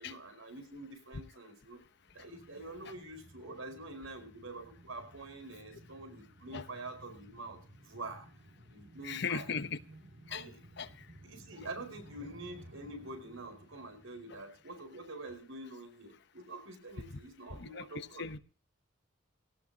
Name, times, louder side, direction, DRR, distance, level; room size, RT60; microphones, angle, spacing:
voice 1, 0.0-1.8 2.1-7.6 7.8-8.3 8.7-9.5 10.3-10.6 11.2-18.3, right 2 dB, 90° right, 7 dB, 4.8 m, -46 dB
sound 1, 2.0-15.2 15.6-15.7, right 1 dB, 70° right, 2.5 m, -57 dB
voice 2, 9.0-9.8 10.3-10.4 10.8-10.9 17.6-18.4, left 6 dB, 55° left, 12 dB, 0.9 m, -37 dB
18.0 x 18.0 x 2.8 m, 0.38 s
head